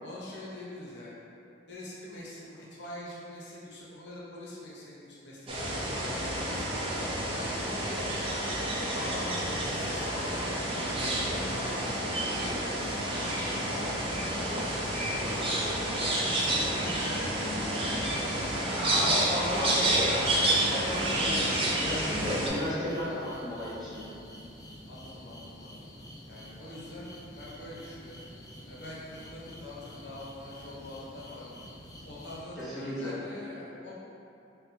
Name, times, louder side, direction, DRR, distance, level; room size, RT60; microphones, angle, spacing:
voice 1, 0.0-1.1 1.7-6.7 7.3-8.3 8.9-14.5 14.9-15.7 16.2-18.2 18.9-19.8 20.7-20.9 24.8-25.8 26.3-28.3 28.7-31.6 32.0-33.9, left 1 dB, 70° left, -6 dB, 0.7 m, -44 dB
sound 1, 5.5-22.5, right 1 dB, 30° right, 0.6 m, -29 dB
voice 2, 18.7-20.3 20.6-24.0 32.6-33.1, left 1 dB, ahead, -13 dB, 1.1 m, -33 dB
sound 2, 21.8-32.4, left 1 dB, 20° left, 0.4 m, -48 dB
4.1 x 2.2 x 4.0 m, 2.7 s
head